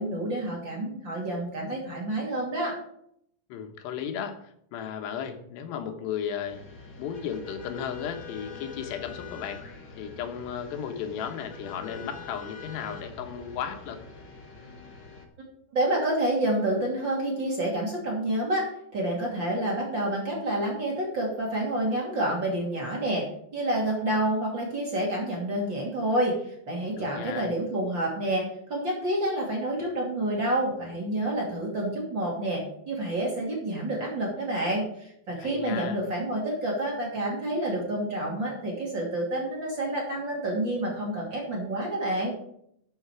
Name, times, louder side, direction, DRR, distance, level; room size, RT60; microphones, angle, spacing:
voice 1, 0.0-2.8 15.7-18.7 18.9-23.3 23.5-42.3, right 1 dB, 30° right, -2 dB, 2.7 m, -28 dB
voice 2, 3.5-6.6 7.0-9.6 10.0-14.0 27.0-27.5 35.4-36.0, left 8 dB, 90° left, 6 dB, 3.4 m, -35 dB
sound 1, 6.4-15.3, left 4 dB, 65° left, 1.1 m, -44 dB
12.5 x 7.4 x 4.8 m, 0.70 s
omnidirectional pair, 4.7 m